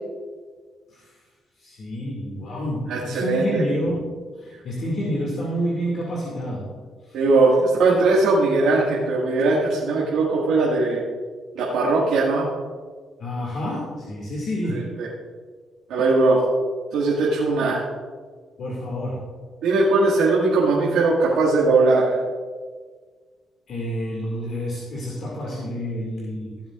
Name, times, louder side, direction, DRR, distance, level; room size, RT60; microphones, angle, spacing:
voice 1, 1.6-4.0 4.3-6.8 7.1-7.2 13.2-15.0 18.6-19.4 23.7-26.6, equal, 60° left, -4 dB, 2.3 m, -29 dB
voice 2, 2.9-3.6 7.1-11.0 11.6-12.5 15.0-15.1 15.9-16.4 16.9-17.8 19.6-22.2, right 3 dB, 85° right, -6 dB, 1.9 m, -19 dB
16.0 x 7.8 x 2.5 m, 1.5 s
cardioid pair, 90°, 0 cm